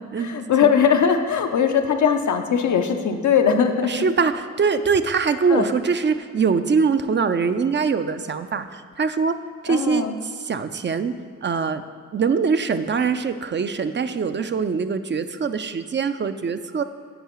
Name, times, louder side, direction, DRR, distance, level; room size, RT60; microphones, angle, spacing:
voice 1, 0.2-4.0 5.5-5.6 9.7-10.1, left 7 dB, 80° left, 6 dB, 0.6 m, -20 dB
voice 2, 3.8-9.4 9.6-11.1 11.4-11.8 12.1-16.8, right 5 dB, 40° right, 10 dB, 0.4 m, -23 dB
10.0 x 4.8 x 3.0 m, 2.1 s
cardioid pair, 45°, 29 cm